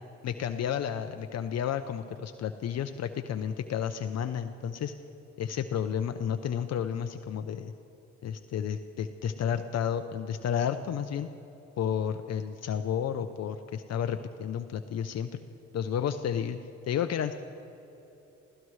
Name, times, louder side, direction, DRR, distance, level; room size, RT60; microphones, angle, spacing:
voice 1, 0.2-4.9 5.4-7.7 8.2-11.3 11.8-15.4 15.7-16.6 16.9-17.3, left 8 dB, 60° left, 8 dB, 0.6 m, -31 dB
27.0 x 16.0 x 3.2 m, 3.0 s
cardioid pair, 90°, 30 cm